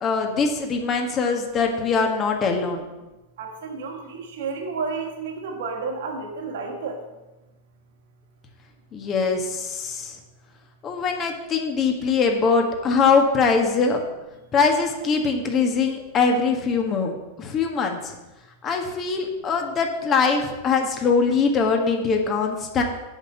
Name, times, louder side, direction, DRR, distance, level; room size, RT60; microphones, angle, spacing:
voice 1, 0.0-2.8 8.9-10.2 10.8-14.0 14.5-18.1 18.6-22.8, left 5 dB, 30° left, 3 dB, 1.5 m, -22 dB
voice 2, 3.4-7.0, right 4 dB, 55° right, 1 dB, 2.0 m, -31 dB
8.1 x 7.0 x 6.9 m, 1.1 s
figure-of-eight pair, 90°, 0 cm